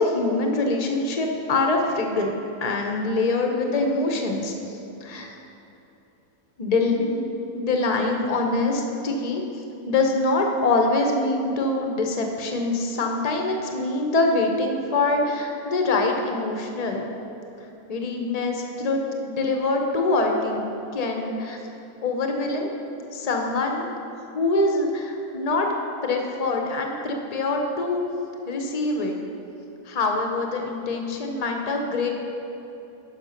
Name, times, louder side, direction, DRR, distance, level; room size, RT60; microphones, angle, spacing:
voice 1, 0.0-2.4 2.6-4.5 5.0-5.3 6.6-7.3 7.5-9.4 9.9-17.0 17.9-19.0 19.3-21.6 22.0-22.7 23.1-23.9 24.3-25.7 26.0-28.0 28.5-29.1 29.9-32.1, left 2 dB, 60° left, 2 dB, 0.4 m, -24 dB
9.7 x 5.8 x 5.7 m, 2.9 s
omnidirectional pair, 1.8 m